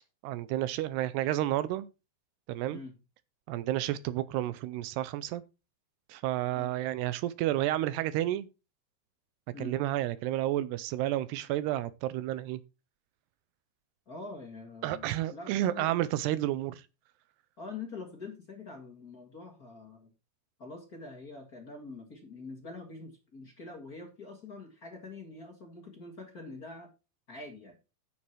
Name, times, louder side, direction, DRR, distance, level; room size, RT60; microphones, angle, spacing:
voice 1, 0.2-1.9 2.5-2.8 3.5-5.4 6.1-8.5 9.6-12.6 14.8-16.8, right 14 dB, 80° right, 2.6 m, -31 dB
voice 2, 14.0-15.9 17.6-20.1 20.6-26.9 27.3-27.8, left 3 dB, 40° left, 1.3 m, -45 dB
10.5 x 7.2 x 4.6 m
omnidirectional pair, 5.0 m